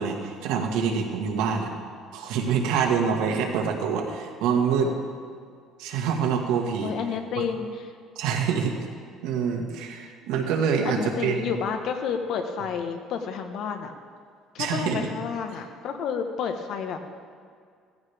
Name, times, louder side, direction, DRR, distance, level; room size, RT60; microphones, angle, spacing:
voice 1, 0.0-1.7 2.1-4.9 5.8-6.9 7.4-7.5 8.2-8.8 9.2-11.5 14.6-15.0, right 6 dB, 85° right, 1 dB, 1.9 m, -26 dB
voice 2, 3.3-3.6 6.8-7.9 10.8-13.9 14.5-17.1, left 6 dB, 60° left, 5 dB, 1.3 m, -30 dB
16.5 x 14.5 x 3.6 m, 2.1 s
cardioid pair, 145°, 0 cm